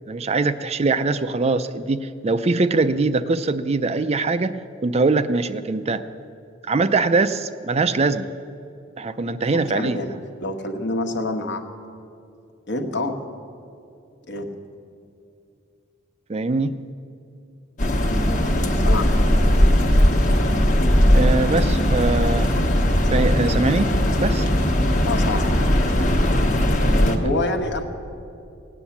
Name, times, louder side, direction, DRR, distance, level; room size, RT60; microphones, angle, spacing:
voice 1, 0.1-4.6 4.8-6.1 6.7-8.3 9.0-10.0 16.3-16.8 21.1-22.5 23.1-24.5, right 3 dB, 30° right, 11 dB, 0.4 m, -22 dB
voice 2, 9.5-10.1 10.4-11.6 12.7-13.2 14.3-14.5 18.7-19.2 25.1-25.5 26.8-27.8, left 2 dB, 60° left, 5 dB, 1.2 m, -27 dB
sound 1, 17.8-27.2, equal, 40° left, 1.2 m, -18 dB
17.5 x 9.0 x 7.1 m, 2.6 s
head